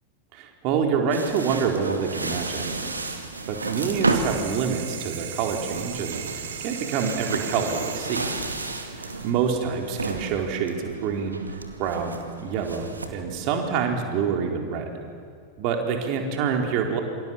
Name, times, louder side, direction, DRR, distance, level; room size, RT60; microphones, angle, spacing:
voice 1, 0.3-2.9 3.5-8.3 8.9-11.4 11.8-14.9 15.6-17.0, right 6 dB, 45° right, 2 dB, 4.2 m, -27 dB
sound 1, 1.1-13.1, right 3 dB, 80° right, 2.3 m, -33 dB
sound 2, 3.4-9.3, right 8 dB, 60° right, 2.8 m, -37 dB
27.5 x 26.0 x 7.4 m, 2.1 s
figure-of-eight pair, 90°, 0 cm